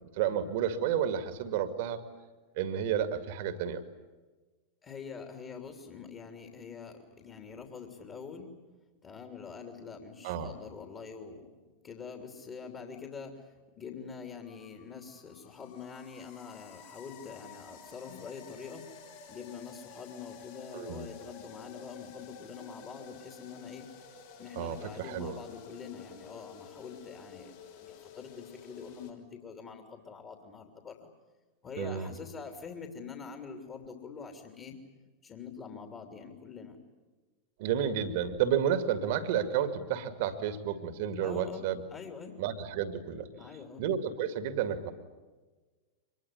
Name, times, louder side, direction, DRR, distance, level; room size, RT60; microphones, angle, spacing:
voice 1, 0.1-2.0 2.6-3.8 10.2-10.5 20.7-21.1 24.6-25.4 31.8-32.1 37.6-41.8 42.4-43.3 43.8-44.9, right 9 dB, 50° right, 10 dB, 2.2 m, -31 dB
voice 2, 4.8-8.5 9.0-11.5 11.8-18.9 19.3-23.9 24.4-31.1 31.6-34.8 35.2-36.8 41.2-42.3 43.3-43.8, left 6 dB, 25° left, 4 dB, 3.1 m, -45 dB
sound 1, 14.4-29.1, left 6 dB, 55° left, 4.3 m, -51 dB
25.0 x 21.5 x 9.7 m, 1.3 s
figure-of-eight pair, 90°, 0 cm